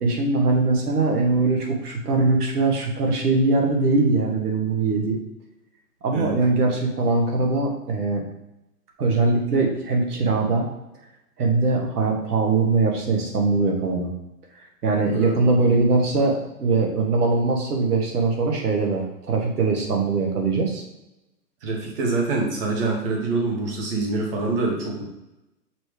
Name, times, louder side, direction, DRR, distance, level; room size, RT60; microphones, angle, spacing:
voice 1, 0.0-5.2 6.0-8.2 9.0-10.7 11.4-14.1 14.8-20.8, right 3 dB, 70° right, 1 dB, 1.7 m, -21 dB
voice 2, 15.1-15.6 21.6-25.0, right 3 dB, 35° right, 0 dB, 1.5 m, -25 dB
6.0 x 3.2 x 4.9 m, 0.93 s
hypercardioid pair, 150°, 48 cm